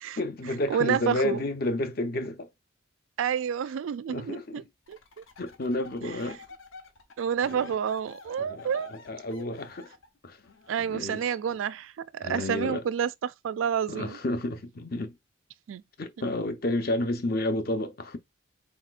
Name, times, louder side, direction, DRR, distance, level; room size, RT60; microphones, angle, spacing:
voice 1, 0.2-2.5 4.1-4.6 5.4-6.4 7.4-7.7 8.4-9.9 10.2-10.4 10.9-11.3 12.2-12.8 13.9-15.2 16.0-18.2, left 1 dB, 50° left, 0.7 m, -31 dB
voice 2, 0.7-1.4 3.2-4.6 4.9-5.2 6.0-6.1 7.2-8.9 10.7-14.2 15.7-15.8, right 8 dB, 80° right, 0.3 m, -29 dB
sound 1, 4.9-10.8, left 4 dB, 80° left, 0.9 m, -50 dB
4.2 x 4.0 x 2.4 m
head